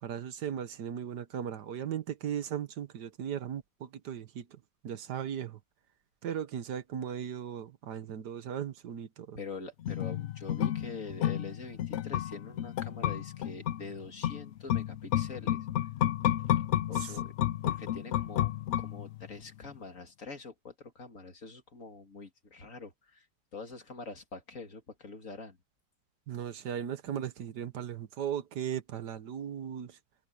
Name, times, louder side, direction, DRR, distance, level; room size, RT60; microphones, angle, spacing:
voice 1, 0.0-5.6 6.2-9.4 16.9-17.2 26.3-30.0, right 9 dB, 75° right, 1.7 m, -37 dB
voice 2, 9.3-15.7 16.9-17.3 17.6-23.3 23.5-25.6, left 4 dB, 50° left, 2.6 m, -45 dB
sound 1, 9.8-19.4 19.7-19.8, left 12 dB, 85° left, 0.6 m, -31 dB
omnidirectional pair, 1.8 m